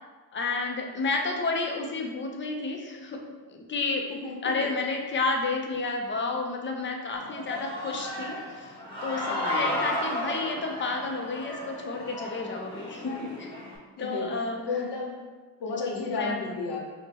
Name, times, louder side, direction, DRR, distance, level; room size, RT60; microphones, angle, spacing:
voice 1, 0.3-3.2 3.5-4.1 4.4-8.7 9.0-13.5 14.0-14.6 15.9-16.3, left 3 dB, 30° left, 2 dB, 0.5 m, -31 dB
voice 2, 4.1-4.7 9.3-9.9 14.0-15.1 15.6-16.8, left 4 dB, 80° left, -1 dB, 0.9 m, -33 dB
Human voice / Cheering, 7.1-13.8, left 1 dB, 10° left, 1.1 m, -34 dB
4.3 x 2.1 x 3.3 m, 1.4 s
cardioid pair, 120°, 41 cm